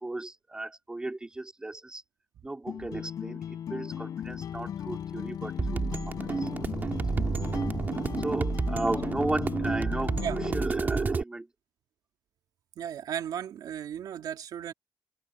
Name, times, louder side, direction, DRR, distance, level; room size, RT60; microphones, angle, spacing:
voice 1, 0.0-2.0 2.4-6.1 6.4-6.5 8.2-10.1 10.5-11.5, right 2 dB, 10° right, 4.5 m, -35 dB
sound 1, 2.7-10.7, left 9 dB, 60° left, 6.1 m, -37 dB
sound 2, 4.2-11.1, left 10 dB, 85° left, 6.7 m, -47 dB
sound 3, 5.6-11.2, right 4 dB, 30° right, 2.4 m, -30 dB
voice 2, 12.8-14.7, right 9 dB, 75° right, 2.7 m, -35 dB
open air
wide cardioid pair, 175°, 7 cm